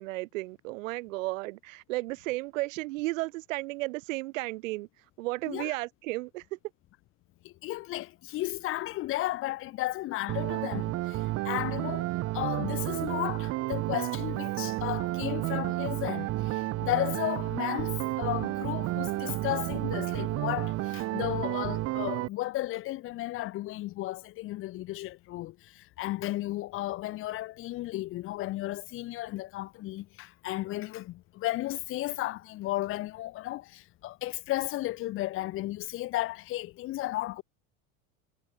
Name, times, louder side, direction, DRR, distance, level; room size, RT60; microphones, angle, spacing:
voice 1, 0.0-4.9 5.2-6.6, right 21 dB, 85° right, 6.0 m, -34 dB
voice 2, 7.4-11.2 11.4-12.1 12.3-25.5 26.0-37.4, left 16 dB, 35° left, 1.0 m, -34 dB
sound 1, 10.3-22.3, right 17 dB, 40° right, 2.8 m, -31 dB
cardioid pair, 165°, 38 cm